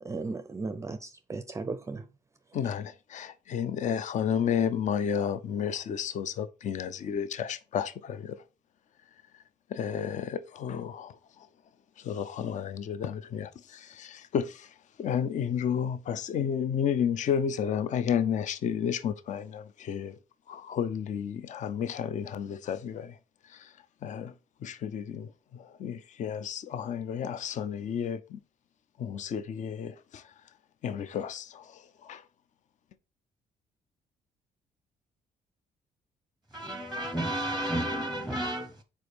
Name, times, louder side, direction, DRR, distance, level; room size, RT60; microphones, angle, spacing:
voice 1, 0.0-2.1, right 3 dB, 20° right, 0.5 m, -36 dB
voice 2, 2.5-8.4 9.7-11.2 12.0-14.7 15.0-20.2 20.5-23.2 23.5-23.7 24.0-24.3 24.6-28.4 29.0-30.2 30.8-32.2, left 8 dB, 55° left, 0.6 m, -32 dB
voice 3, 36.5-38.8, right 1 dB, ahead, 0.8 m, -32 dB
4.9 x 4.4 x 4.9 m
cardioid pair, 105°, 15 cm